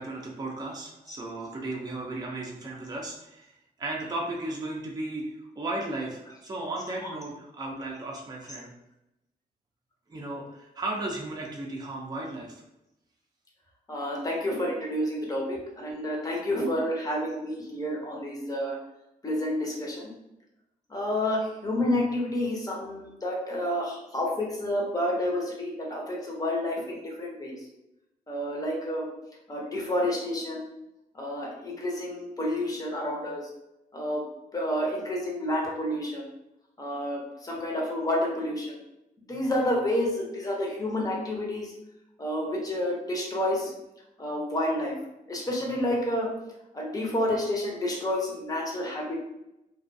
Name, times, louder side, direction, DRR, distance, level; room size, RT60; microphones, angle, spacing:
voice 1, 0.0-3.5 3.8-5.2 5.6-8.7 10.1-12.6, right 2 dB, 25° right, -2 dB, 0.5 m, -35 dB
voice 2, 13.9-18.8 19.2-20.1 20.9-27.5 28.3-29.1 29.5-30.7 31.1-33.4 33.9-34.2 34.5-36.3 36.8-38.7 39.3-41.7 42.2-43.7 44.2-44.9 45.3-46.3 46.7-49.2, left 1 dB, 25° left, -2 dB, 0.8 m, -29 dB
2.4 x 2.3 x 2.6 m, 0.90 s
cardioid pair, 80°, 15 cm